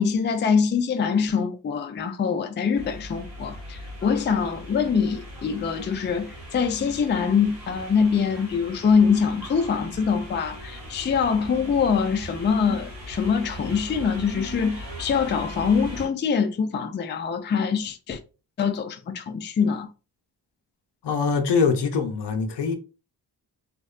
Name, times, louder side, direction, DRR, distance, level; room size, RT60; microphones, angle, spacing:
voice 1, 0.0-18.2 18.6-19.9, left 6 dB, 25° left, 0.4 m, -24 dB
sound 1, 2.7-16.1, equal, 80° right, 1.4 m, -40 dB
voice 2, 21.0-22.7, left 5 dB, 70° left, 0.6 m, -23 dB
2.6 x 2.1 x 2.3 m
cardioid pair, 45°, 43 cm